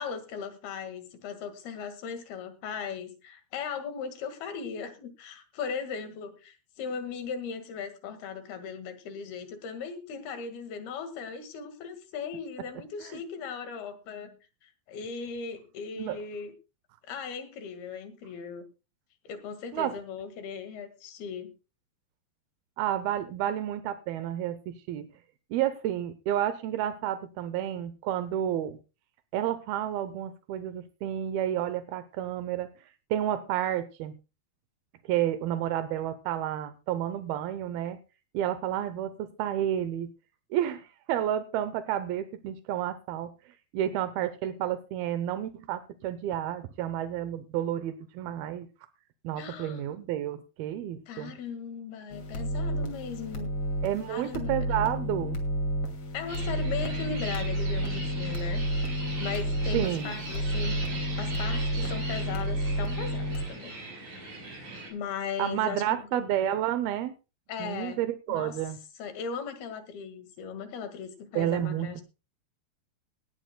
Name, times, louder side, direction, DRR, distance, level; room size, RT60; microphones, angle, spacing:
voice 1, 0.0-14.4 14.6-16.5 17.0-18.6 19.3-21.5 49.4-50.0 51.1-53.5 54.1-54.5 56.1-58.6 59.2-63.7 64.5-66.3 67.5-68.0 68.3-68.6 69.0-72.0, left 6 dB, 90° left, 8 dB, 3.8 m, -38 dB
voice 2, 22.8-25.1 25.5-28.8 29.3-32.7 33.1-34.1 35.1-38.0 38.3-40.1 40.5-43.3 43.7-48.7 49.2-51.3 53.8-55.4 59.7-60.1 65.4-67.1 67.6-68.8 71.4-72.0, right 11 dB, 85° right, 12 dB, 2.7 m, -30 dB
sound 1, 52.1-63.5, equal, 40° left, 3.0 m, -31 dB
sound 2, 56.3-64.9, right 2 dB, 55° right, 6.8 m, -40 dB
18.5 x 14.5 x 2.2 m, 0.30 s
omnidirectional pair, 4.3 m